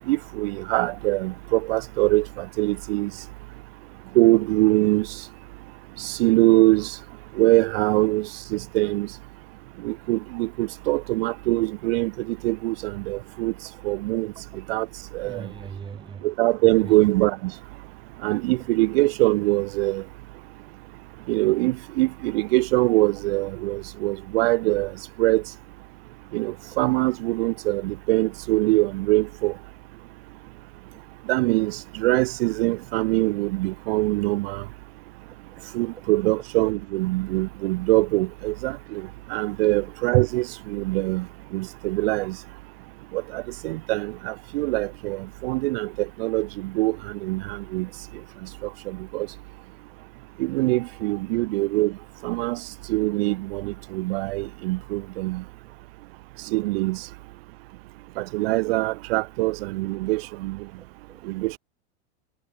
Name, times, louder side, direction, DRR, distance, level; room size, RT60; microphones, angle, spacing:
voice 1, 0.1-3.1 4.1-5.1 6.0-6.9 7.4-9.1 9.8-13.5 13.8-14.3 14.7-14.9 15.1-15.5 16.2-17.5 18.2-20.0 21.3-24.9 25.2-25.4 26.3-29.5 31.3-34.6 35.7-41.3 41.5-42.4 43.1-45.9 46.2-47.0 47.2-47.9 48.9-49.3 50.4-51.9 52.2-52.6 52.9-55.4 56.5-57.0 58.2-60.6 61.3-61.6, right 21 dB, 60° right, 0.8 m, -23 dB
voice 2, 15.3-16.3 16.8-16.9 35.5-35.6 45.5-45.6 60.8-61.4, right 6 dB, 15° right, 2.6 m, -40 dB
supercardioid pair, 160°, 33 cm